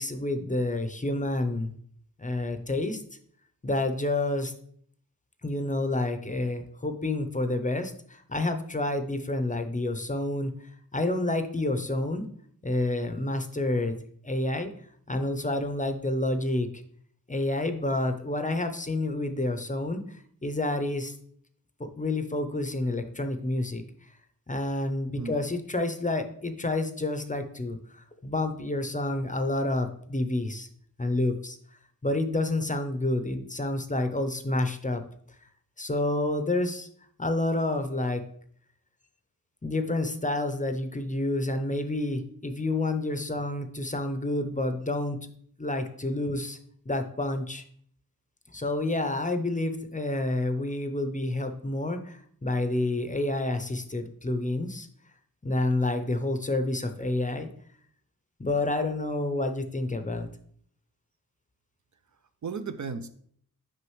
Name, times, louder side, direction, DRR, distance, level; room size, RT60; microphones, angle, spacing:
voice 1, 0.0-1.7 2.2-3.0 3.6-4.5 5.4-10.5 10.9-12.3 12.6-14.0 14.2-14.7 15.1-16.7 17.3-20.2 20.4-21.1 21.8-23.8 24.5-30.7 31.0-31.6 32.0-35.0 35.8-36.9 37.2-38.2 39.6-45.2 45.6-46.6 46.9-47.6 48.5-54.9 55.4-57.5 58.4-60.3, left 2 dB, 20° left, 7 dB, 0.6 m, -29 dB
voice 2, 62.1-63.1, right 5 dB, 50° right, 10 dB, 0.4 m, -36 dB
6.4 x 5.0 x 3.1 m, 0.62 s
wide cardioid pair, 65°, 39 cm